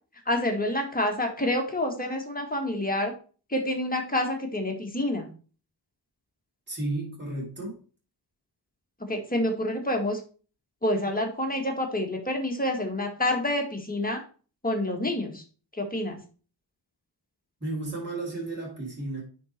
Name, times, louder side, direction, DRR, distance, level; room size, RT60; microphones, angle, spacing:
voice 1, 0.2-3.1 3.5-5.3 9.1-10.2 10.8-14.2 14.6-15.4 15.8-16.2, left 1 dB, 20° left, 3 dB, 1.6 m, -28 dB
voice 2, 6.7-7.8 17.6-19.2, right 2 dB, 25° right, -5 dB, 3.1 m, -33 dB
9.4 x 3.9 x 4.4 m, 0.38 s
wide cardioid pair, 110°, 41 cm